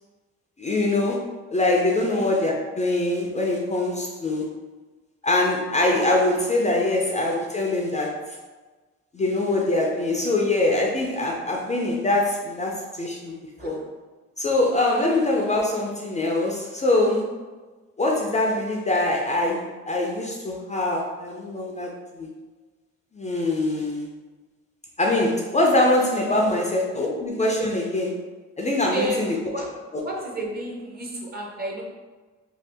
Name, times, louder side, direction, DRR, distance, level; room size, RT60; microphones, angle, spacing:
voice 1, 0.6-4.5 5.2-8.2 9.1-13.8 14.4-17.3 18.0-22.3 23.1-24.1 25.0-28.2 28.6-29.4, left 2 dB, 25° left, -2 dB, 0.5 m, -23 dB
voice 2, 28.9-29.2 29.5-29.7 30.0-31.8, right 1 dB, 30° right, -1 dB, 0.7 m, -31 dB
2.7 x 2.3 x 3.3 m, 1.3 s
cardioid pair, 90°, 30 cm